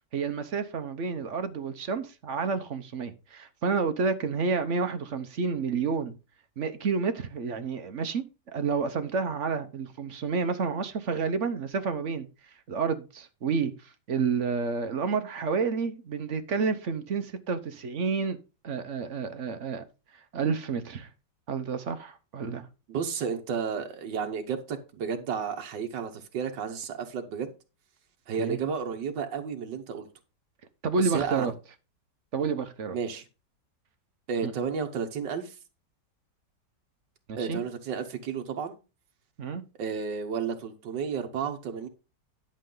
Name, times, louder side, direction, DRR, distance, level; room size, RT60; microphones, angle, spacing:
voice 1, 0.1-6.1 6.6-8.2 8.5-12.3 12.7-18.4 18.6-19.8 20.3-21.1 21.5-22.7 28.4-28.6 30.8-31.5 32.3-33.0 34.4-34.5 37.3-37.6 39.4-39.6, right 5 dB, 50° right, 1.1 m, -30 dB
voice 2, 22.9-27.5 28.3-30.1 31.0-31.5 32.9-33.2 34.3-35.6 37.4-38.8 39.8-41.9, right 6 dB, 90° right, 1.8 m, -32 dB
11.0 x 6.5 x 3.8 m
omnidirectional pair, 1.9 m